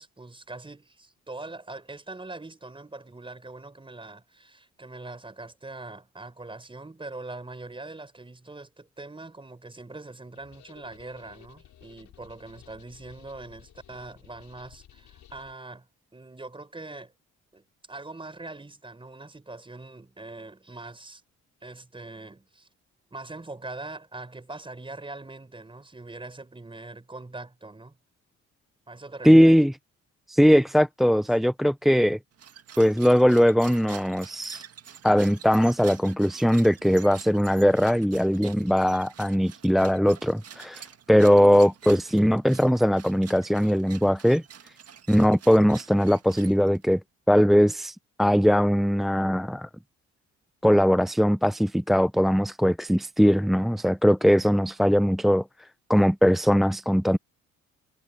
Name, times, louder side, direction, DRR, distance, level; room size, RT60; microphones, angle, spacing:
voice 1, 0.0-17.1 17.5-21.2 21.6-22.7 23.1-28.0 28.9-29.6, right 2 dB, 15° right, 5.2 m, -42 dB
sound 1, 10.4-15.5, left 11 dB, 75° left, 6.2 m, -54 dB
voice 2, 29.2-29.7 30.3-32.2 32.8-34.6 35.0-44.4 45.1-47.0 47.3-49.7 50.6-55.4 55.9-57.2, equal, ahead, 0.3 m, -20 dB
sound 2, 32.3-46.9, right 8 dB, 55° right, 1.8 m, -47 dB
cardioid pair, 90°, 30 cm